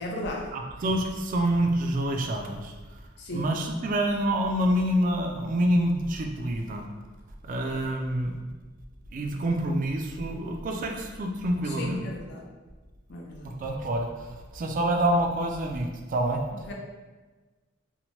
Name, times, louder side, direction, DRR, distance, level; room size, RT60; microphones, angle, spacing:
voice 1, 0.0-0.5 3.2-3.6 11.6-12.4 13.1-13.5 16.5-16.7, left 1 dB, 60° left, -1 dB, 0.5 m, -36 dB
voice 2, 0.5-2.6 3.3-6.8 7.5-8.3 9.1-12.0 13.4-14.1 14.5-16.4, right 1 dB, 45° right, 3 dB, 0.3 m, -27 dB
2.8 x 2.1 x 2.9 m, 1.3 s
head